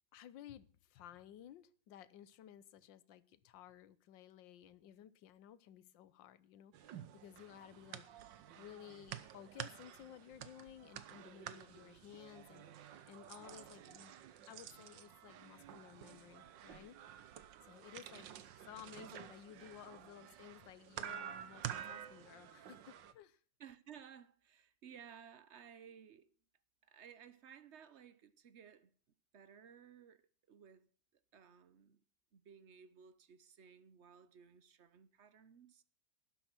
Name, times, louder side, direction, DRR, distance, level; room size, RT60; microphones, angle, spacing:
voice 1, 0.1-8.1 8.6-14.1 14.5-17.0 17.6-23.4, left 11 dB, 75° left, 1.5 m, -56 dB
sound 1, 6.7-23.1, right 10 dB, 75° right, 1.6 m, -50 dB
voice 2, 23.6-26.3 26.8-28.9 29.3-30.2 30.5-32.0 32.3-35.8, right 8 dB, 50° right, 0.8 m, -58 dB
12.5 x 10.5 x 6.0 m
omnidirectional pair, 2.1 m